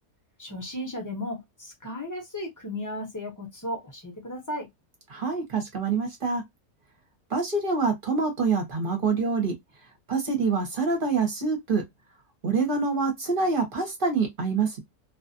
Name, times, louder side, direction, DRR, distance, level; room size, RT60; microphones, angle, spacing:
voice 1, 0.4-4.7, left 1 dB, 20° left, 0.6 m, -35 dB
voice 2, 5.1-6.4 7.3-9.5 10.1-11.8 12.4-14.8, right 4 dB, 40° right, 0.8 m, -26 dB
2.5 x 2.4 x 2.5 m
omnidirectional pair, 1.7 m